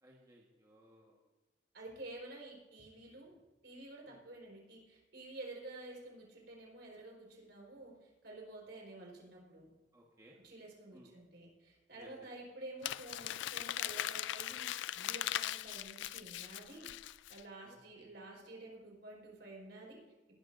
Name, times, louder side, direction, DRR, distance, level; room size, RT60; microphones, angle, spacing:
voice 1, 0.0-1.2 4.0-4.2 9.9-10.4 10.9-11.1 12.0-12.1 17.6-18.1, equal, 20° right, -2 dB, 1.4 m, -61 dB
voice 2, 1.7-9.7 10.4-16.9 17.3-20.0, right 2 dB, 60° right, -2 dB, 4.4 m, -50 dB
Crumpling crinkling, 12.8-17.4, left 13 dB, 75° left, 0.3 m, -39 dB
19.5 x 12.0 x 2.6 m, 1.2 s
head